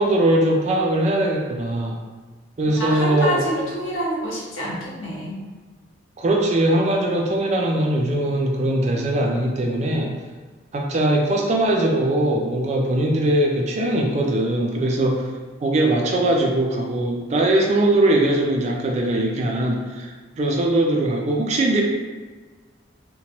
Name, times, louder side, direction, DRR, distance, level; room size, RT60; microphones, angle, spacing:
voice 1, 0.0-2.0 2.6-3.4 6.2-10.1 10.7-15.3 15.6-20.1 20.4-21.8, right 1 dB, 35° right, 0 dB, 0.3 m, -20 dB
voice 2, 2.6-5.4, equal, 85° left, -4 dB, 0.8 m, -27 dB
2.9 x 2.1 x 2.9 m, 1.4 s
head